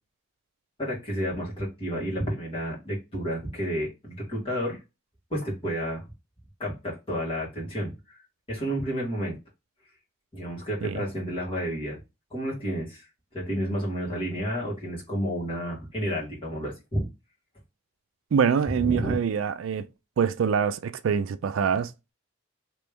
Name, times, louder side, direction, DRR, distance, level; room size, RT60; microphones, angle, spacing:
voice 1, 0.8-4.8 5.3-6.0 6.6-7.9 8.5-9.4 10.3-12.0 12.3-13.1 13.3-17.1 18.8-19.1, equal, 25° left, 1.8 m, -30 dB
voice 2, 18.3-19.9 20.2-22.1, right 7 dB, 70° right, 0.3 m, -25 dB
3.2 x 2.9 x 3.4 m
head